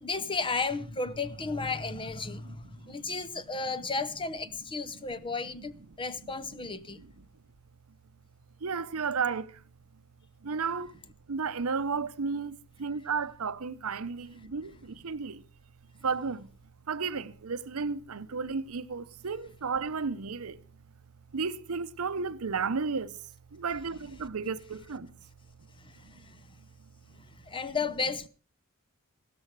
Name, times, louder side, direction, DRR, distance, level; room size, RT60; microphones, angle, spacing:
voice 1, 0.0-7.0 25.8-26.4 27.4-28.3, left 4 dB, 25° left, 0.7 m, -34 dB
voice 2, 2.3-3.2 6.2-6.3 6.6-7.1 8.6-9.6 10.4-11.0 11.3-15.4 16.0-16.5 16.9-20.6 21.3-23.2 23.5-25.1 26.1-26.3, right 5 dB, 75° right, 0.7 m, -33 dB
16.0 x 13.0 x 4.7 m
head